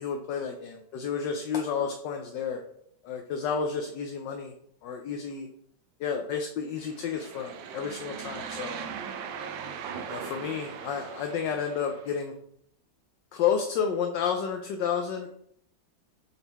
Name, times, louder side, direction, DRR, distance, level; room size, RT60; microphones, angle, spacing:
voice 1, 0.0-2.6 3.0-4.5 4.8-5.5 6.0-8.8 10.1-12.3 13.3-15.3, left 7 dB, 75° left, 4 dB, 1.3 m, -31 dB
sound 1, 6.8-12.2, right 7 dB, 85° right, 1.3 m, -39 dB
8.1 x 3.7 x 4.1 m, 0.70 s
omnidirectional pair, 2.1 m